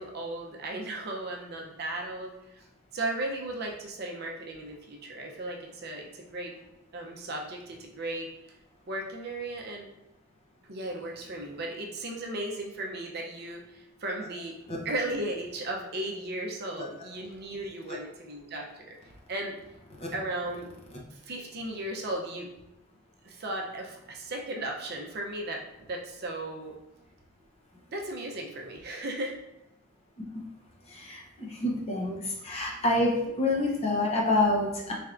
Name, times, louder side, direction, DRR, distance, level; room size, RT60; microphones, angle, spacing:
voice 1, 0.0-2.6 2.9-6.5 6.9-8.3 8.9-9.9 10.7-14.6 14.8-19.0 19.3-19.6 20.1-20.7 21.1-22.5 23.2-25.6 25.9-26.7 27.9-29.4 33.2-33.3, right 1 dB, 50° right, 0 dB, 0.6 m, -36 dB
voice 2, 30.9-34.9, left 2 dB, 30° left, -3 dB, 0.8 m, -27 dB
4.4 x 3.3 x 2.5 m, 0.90 s
head